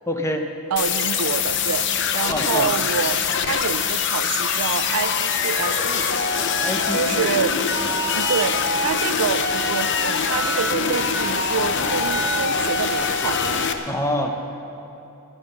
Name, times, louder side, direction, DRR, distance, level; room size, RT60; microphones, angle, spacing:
voice 1, 0.1-0.5 2.3-2.7 6.6-7.3 7.8-8.0 13.9-14.3, left 1 dB, 15° left, 4 dB, 0.8 m, -26 dB
voice 2, 0.7-6.1 6.5-7.6 8.1-13.4, right 7 dB, 90° right, 14 dB, 0.5 m, -27 dB
sound 1, 0.8-13.7, left 5 dB, 55° left, 0.8 m, -23 dB
sound 2, 0.9-12.8, right 1 dB, 35° right, 1.3 m, -42 dB
21.0 x 8.8 x 5.6 m, 3.0 s
head